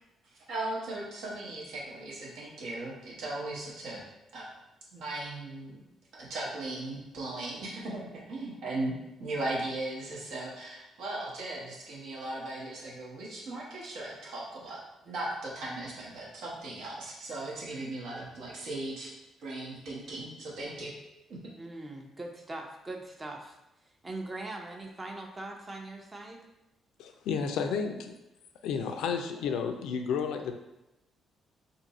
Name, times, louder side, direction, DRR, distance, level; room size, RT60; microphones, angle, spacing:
voice 1, 0.3-4.0 4.3-4.5 4.9-5.8 6.1-14.8 15.0-19.1 19.4-20.9, right 2 dB, 80° right, -5 dB, 1.0 m, -37 dB
voice 2, 21.6-23.6 24.0-26.5, right 2 dB, 25° right, 2 dB, 0.6 m, -41 dB
voice 3, 27.0-28.1 28.6-30.6, left 6 dB, 85° left, 6 dB, 0.3 m, -31 dB
2.6 x 2.5 x 4.0 m, 0.94 s
cardioid pair, 90°, 0 cm